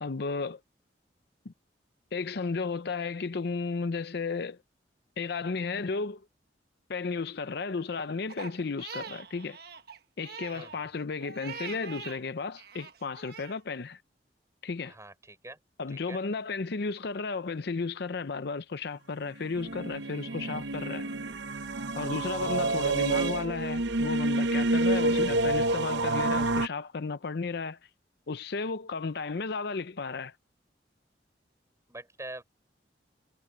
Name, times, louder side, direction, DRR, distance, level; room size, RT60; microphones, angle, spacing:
voice 1, 0.0-0.6 1.5-1.6 2.1-4.6 5.2-6.2 6.9-9.6 10.2-14.0 14.6-14.9 15.8-21.1 22.0-27.8 28.3-30.3, left 4 dB, 65° left, 0.6 m, -34 dB
Crying sobbing, 8.3-12.2 12.6-13.6, right 6 dB, 60° right, 1.4 m, -43 dB
voice 2, 10.5-10.9 14.8-15.6 15.9-16.2 22.2-22.5 31.9-32.4, right 2 dB, 15° right, 5.7 m, -45 dB
sound 1, 19.4-26.7, right 2 dB, 85° right, 0.9 m, -28 dB
head